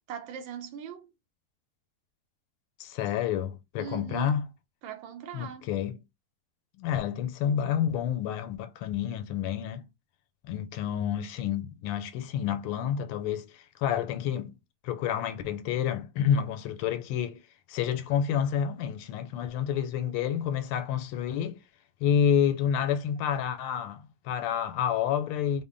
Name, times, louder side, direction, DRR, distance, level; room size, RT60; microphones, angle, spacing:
voice 1, 0.1-1.1 3.8-4.4 4.8-5.7, right 8 dB, 75° right, 1.4 m, -40 dB
voice 2, 2.8-4.5 5.3-6.0 6.8-9.9 10.4-14.6 14.8-17.4 17.7-21.6 22.0-25.6, left 9 dB, 85° left, 1.5 m, -29 dB
3.5 x 2.1 x 3.8 m
omnidirectional pair, 2.3 m